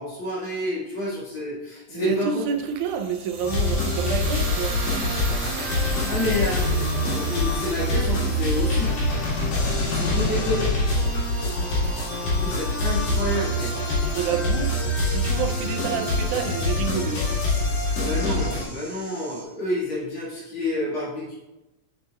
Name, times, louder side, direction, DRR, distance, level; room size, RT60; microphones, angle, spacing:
voice 1, 0.0-2.4 6.1-9.0 9.9-10.6 12.3-13.8 18.0-21.3, left 1 dB, 45° left, -7 dB, 2.7 m, -29 dB
voice 2, 1.9-4.8 10.1-10.2 14.1-14.7 15.1-17.2, right 7 dB, 85° right, 5 dB, 2.2 m, -28 dB
sound 1, 2.5-12.6, right 2 dB, 55° right, 2.3 m, -36 dB
sound 2, 3.4-18.6, left 1 dB, 70° left, 3.4 m, -25 dB
sound 3, 12.9-19.4, equal, 30° left, 1.3 m, -45 dB
8.2 x 6.7 x 2.4 m, 1.0 s
omnidirectional pair, 3.4 m